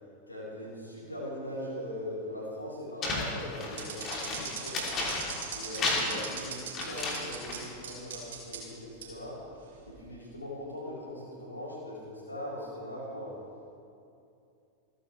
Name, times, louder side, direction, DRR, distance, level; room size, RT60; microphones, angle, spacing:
voice 1, 0.3-4.1 4.4-4.9 5.5-9.4 9.9-13.4, left 1 dB, 80° left, -7 dB, 3.9 m, -40 dB
sound 1, 3.0-5.5 5.7-7.7, left 3 dB, 30° left, 3.0 m, -33 dB
sound 2, 3.8-7.6 7.8-8.6 9.0-9.1 9.8-10.0, right 8 dB, 60° right, 3.2 m, -39 dB
28.0 x 9.9 x 3.3 m, 2.6 s
figure-of-eight pair, 90°, 0 cm